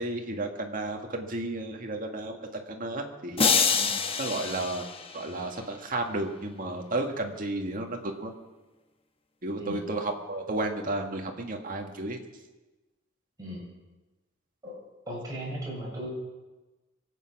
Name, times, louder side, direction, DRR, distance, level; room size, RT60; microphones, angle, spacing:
voice 1, 0.0-3.6 4.2-4.9 5.1-8.3 9.4-12.2, right 2 dB, 40° right, 2 dB, 1.8 m, -32 dB
sound 1, 3.4-5.6, left 5 dB, 30° left, 0.9 m, -26 dB
voice 2, 15.1-16.1, right 1 dB, 20° right, -5 dB, 6.7 m, -37 dB
23.5 x 8.5 x 6.0 m, 1.1 s
head